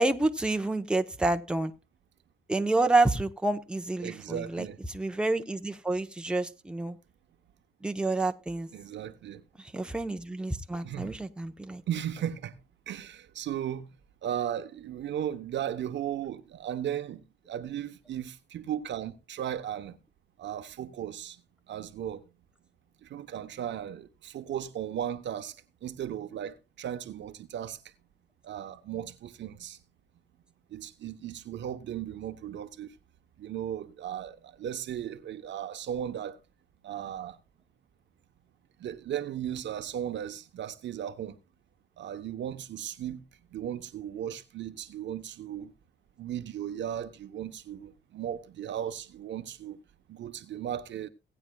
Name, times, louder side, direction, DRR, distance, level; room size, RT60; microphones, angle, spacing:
voice 1, 0.0-1.7 2.5-7.0 7.8-8.7 9.6-11.8, right 2 dB, 5° right, 0.9 m, -28 dB
voice 2, 4.0-4.8 8.7-9.4 10.8-11.2 11.9-12.5 12.9-13.9 14.2-17.2 17.5-20.0 20.4-21.4 21.7-22.2 23.0-25.6 25.8-27.8 28.4-29.8 30.7-32.9 33.4-36.4 36.8-37.4 38.8-41.4 42.0-43.2 43.5-45.7 46.2-49.8 50.1-51.1, right 10 dB, 65° right, 1.0 m, -36 dB
18.0 x 8.9 x 2.3 m
cardioid pair, 90°, 20 cm